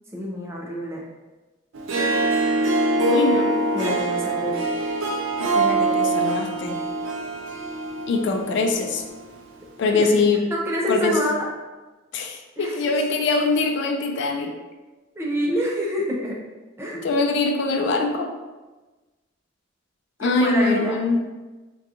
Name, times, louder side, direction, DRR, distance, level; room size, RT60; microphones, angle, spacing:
voice 1, 0.1-1.0 3.7-4.5 9.8-10.1 10.5-11.5 12.6-13.0 15.2-16.4 16.8-17.0 20.2-21.0, equal, 15° right, -3 dB, 0.5 m, -27 dB
Harp, 1.7-9.2, right 2 dB, 80° right, 0.4 m, -24 dB
voice 2, 3.0-3.5 5.4-6.8 8.1-9.0 9.8-10.5 10.9-11.2 12.1-14.5 16.9-18.3 20.2-21.2, left 3 dB, 60° left, 4 dB, 0.3 m, -23 dB
3.6 x 2.3 x 2.8 m, 1.2 s
head